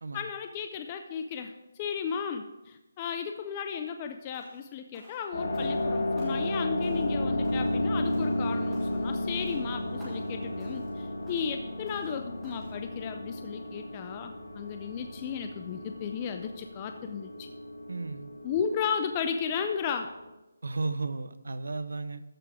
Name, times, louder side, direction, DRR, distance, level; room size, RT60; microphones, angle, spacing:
voice 1, 0.1-17.5 18.4-20.1, left 7 dB, 15° left, 6 dB, 0.3 m, -34 dB
sound 1, 4.3-4.7 4.9-5.9 6.2-6.6 6.8-7.2 7.4-7.8 8.1-8.4 8.7-9.1 9.4-9.6 10.0-10.3 10.6-11.0 11.3-11.5 11.9-12.2 12.4-12.8, equal, ahead, 1.6 m, -56 dB
sound 2, 5.3-20.3, left 1 dB, 70° left, 2.2 m, -33 dB
voice 2, 17.9-18.3 20.6-22.2, right 3 dB, 70° right, 13 dB, 0.7 m, -34 dB
13.5 x 5.9 x 4.8 m, 1.0 s
hypercardioid pair, 180°, 0 cm